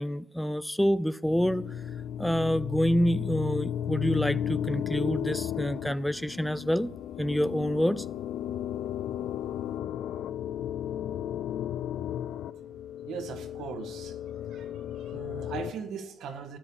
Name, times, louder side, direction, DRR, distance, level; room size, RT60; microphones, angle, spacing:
voice 1, 0.0-1.6 2.2-6.9 7.2-8.1, equal, 5° left, 17 dB, 0.4 m, -27 dB
sound 1, 1.3-15.7, left 10 dB, 80° left, 0.5 m, -34 dB
voice 2, 13.1-14.2 14.5-16.6, right 7 dB, 80° right, 6 dB, 1.7 m, -39 dB
14.0 x 10.0 x 7.2 m, 0.87 s
cardioid pair, 90°, 0 cm